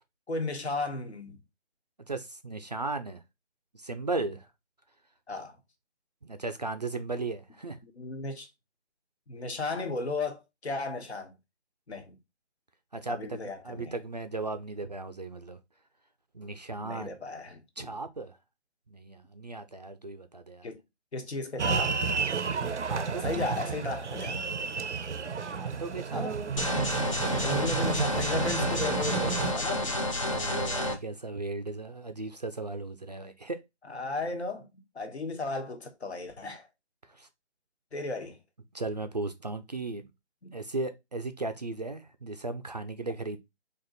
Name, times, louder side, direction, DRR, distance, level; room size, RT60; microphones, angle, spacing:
voice 1, 0.3-1.4 5.3-5.5 8.0-8.5 9.3-11.3 11.9-12.1 13.1-13.9 16.8-18.0 20.6-20.8 21.1-22.0 23.2-24.5 26.1-26.4 27.4-30.0 33.9-34.7 34.9-36.7 37.9-38.4 40.4-40.5, left 3 dB, 65° left, 1.4 m, -35 dB
voice 2, 2.1-3.2 3.8-4.5 6.2-7.8 12.9-13.4 13.6-15.6 16.3-17.1 17.8-18.4 18.9-20.7 22.7-23.4 25.5-26.3 27.2-27.7 30.3-33.6 37.1-37.3 38.7-40.1 40.5-43.5, right 3 dB, 40° right, 0.4 m, -36 dB
sound 1, 21.6-29.5, right 5 dB, 85° right, 0.6 m, -31 dB
sound 2, 26.6-31.0, left 1 dB, 30° left, 0.5 m, -30 dB
4.4 x 2.9 x 3.9 m
figure-of-eight pair, 150°, 35 cm